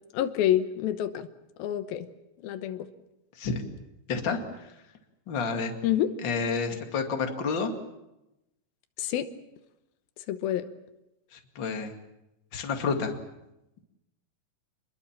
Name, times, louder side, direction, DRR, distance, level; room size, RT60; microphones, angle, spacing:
voice 1, 0.1-1.3 1.6-2.1 2.4-2.9 5.8-6.1 9.0-9.3 10.3-10.7, left 11 dB, 85° left, 11 dB, 2.9 m, -27 dB
voice 2, 4.1-4.7 5.3-5.7 6.2-7.7 11.3-11.9 12.5-13.2, left 5 dB, 35° left, 5 dB, 2.6 m, -30 dB
27.5 x 21.5 x 7.4 m, 0.91 s
omnidirectional pair, 4.1 m